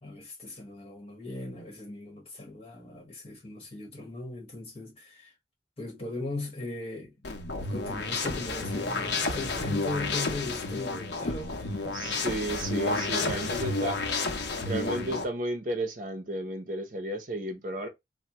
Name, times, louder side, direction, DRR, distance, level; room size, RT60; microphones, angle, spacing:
voice 1, 0.0-5.3 5.8-7.1 7.7-12.3 12.7-13.5, left 2 dB, 35° left, 1.3 m, -39 dB
sound 1, 7.2-15.2, left 3 dB, 80° left, 0.7 m, -31 dB
voice 2, 11.9-14.0 14.7-17.9, right 1 dB, 45° right, 0.7 m, -33 dB
3.3 x 2.1 x 2.9 m
head